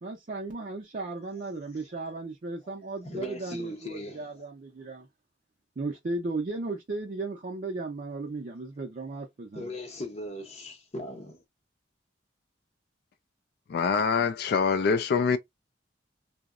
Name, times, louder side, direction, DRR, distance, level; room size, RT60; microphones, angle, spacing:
voice 1, 0.0-5.1 5.8-9.7, right 3 dB, 45° right, 0.5 m, -35 dB
voice 2, 3.0-4.3 9.5-11.4, left 1 dB, 35° left, 0.7 m, -39 dB
voice 3, 13.7-15.4, left 5 dB, 60° left, 0.3 m, -24 dB
2.7 x 2.0 x 2.3 m
head